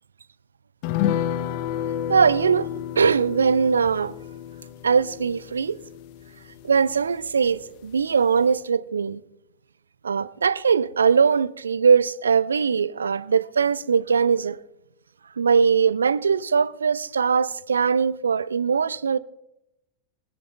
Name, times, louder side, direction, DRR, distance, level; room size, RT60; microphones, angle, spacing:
sound 1, 0.8-7.6 7.9-8.0 8.4-8.5, left 10 dB, 45° left, 0.7 m, -31 dB
voice 1, 2.1-2.7 3.0-4.1 4.8-5.8 6.6-9.2 10.0-14.6 15.4-19.2, right 6 dB, 70° right, 0.4 m, -21 dB
20.5 x 11.0 x 3.4 m
figure-of-eight pair, 90°, 0 cm